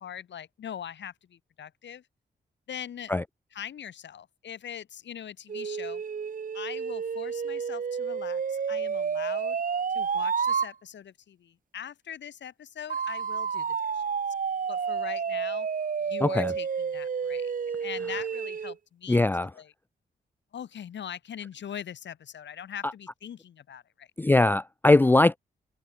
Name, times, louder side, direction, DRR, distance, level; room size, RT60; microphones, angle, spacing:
voice 1, 0.0-2.0 2.7-3.1 3.5-6.0 6.5-9.6 9.9-14.0 14.7-15.7 16.0-17.5 17.8-19.2 19.5-19.7 20.5-24.1, left 9 dB, 80° left, 3.4 m, -41 dB
sound 1, 5.5-10.7 12.9-18.7, right 6 dB, 45° right, 1.0 m, -30 dB
voice 2, 16.2-16.5 19.1-19.5 22.8-22.9 24.2-25.4, left 2 dB, 10° left, 0.4 m, -21 dB
open air
cardioid pair, 65°, 19 cm